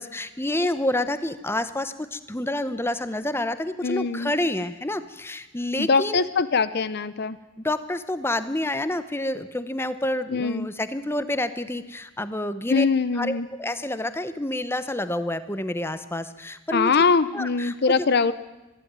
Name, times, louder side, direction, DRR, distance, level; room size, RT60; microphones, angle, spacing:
voice 1, 0.0-6.2 7.6-12.9 13.1-17.0 17.3-18.1, left 1 dB, 10° left, 13 dB, 0.8 m, -28 dB
voice 2, 3.8-4.3 5.8-7.4 10.3-10.7 12.7-13.5 16.7-18.3, left 4 dB, 50° left, 15 dB, 0.6 m, -22 dB
24.5 x 11.5 x 9.5 m, 1.1 s
head